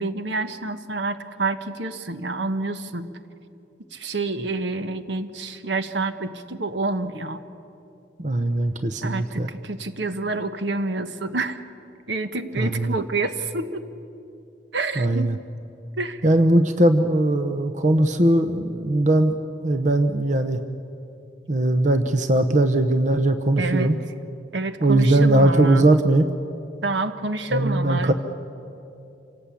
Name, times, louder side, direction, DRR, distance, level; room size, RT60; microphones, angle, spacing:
voice 1, 0.0-3.1 3.9-7.4 9.0-11.6 12.1-13.9 14.7-15.3 16.0-16.2 23.6-23.9 24.5-25.9 26.8-28.1, right 2 dB, 70° right, 9 dB, 1.2 m, -28 dB
voice 2, 8.2-9.5 12.6-13.0 15.0-15.4 16.2-19.3 19.6-20.6 21.5-24.0 24.8-26.3 27.5-28.1, right 1 dB, 40° right, 8 dB, 0.9 m, -19 dB
26.5 x 17.5 x 8.5 m, 2.7 s
head